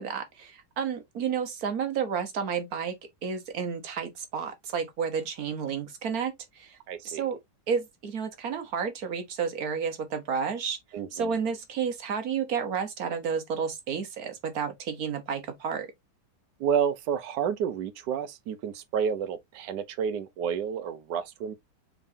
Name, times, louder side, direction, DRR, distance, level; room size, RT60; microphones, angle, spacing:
voice 1, 0.0-6.8 7.0-7.4 7.7-10.8 11.1-15.9, right 6 dB, 60° right, 1.4 m, -31 dB
voice 2, 6.9-7.2 10.9-11.4 16.6-21.5, right 7 dB, 75° right, 1.3 m, -30 dB
5.3 x 3.8 x 2.7 m
omnidirectional pair, 1.9 m